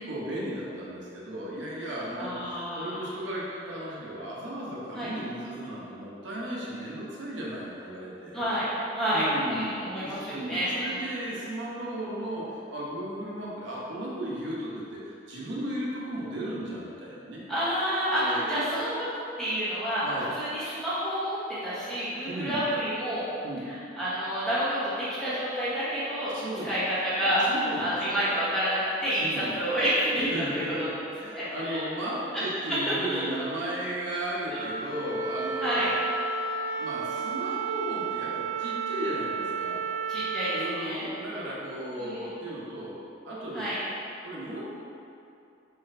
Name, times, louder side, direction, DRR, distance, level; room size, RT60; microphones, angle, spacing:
voice 1, 0.0-8.4 9.1-17.4 18.1-18.6 20.0-20.3 22.3-22.7 23.4-23.6 26.3-26.8 27.2-28.3 29.2-29.7 30.2-35.9 36.8-39.8 40.5-42.9 43.2-43.7 44.2-44.6, right 1 dB, 80° right, -6 dB, 0.9 m, -35 dB
voice 2, 2.2-3.0 4.9-5.1 8.3-8.7 8.9-11.1 17.5-19.1 19.4-20.0 20.3-23.2 23.7-26.4 26.6-27.4 27.8-30.6 31.3-31.9 32.3-32.4 32.9-33.3 34.5-34.6 35.6-35.9 40.1-41.1 42.0-42.3 43.5-43.8, equal, 5° left, -12 dB, 1.1 m, -29 dB
Wind instrument woodwind instrument, 34.5-40.8, right 5 dB, 40° right, 0.3 m, -32 dB
4.3 x 4.0 x 2.6 m, 2.6 s
head